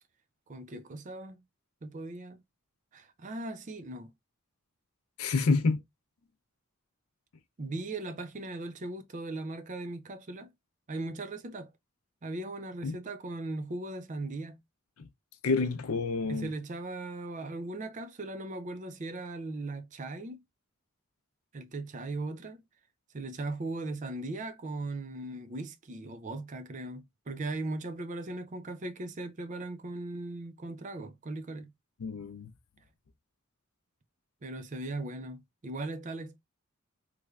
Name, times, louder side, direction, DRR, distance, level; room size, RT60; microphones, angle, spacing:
voice 1, 0.5-1.4 1.8-2.4 2.9-4.1 7.6-10.5 10.9-11.7 12.2-14.6 16.3-20.4 21.5-22.6 23.1-31.7 34.4-36.4, right 2 dB, 35° right, 0.4 m, -38 dB
voice 2, 5.2-5.8 12.8-13.0 15.0-15.1 15.4-16.5 32.0-32.5, left 4 dB, 85° left, 0.5 m, -28 dB
3.3 x 3.1 x 2.3 m
head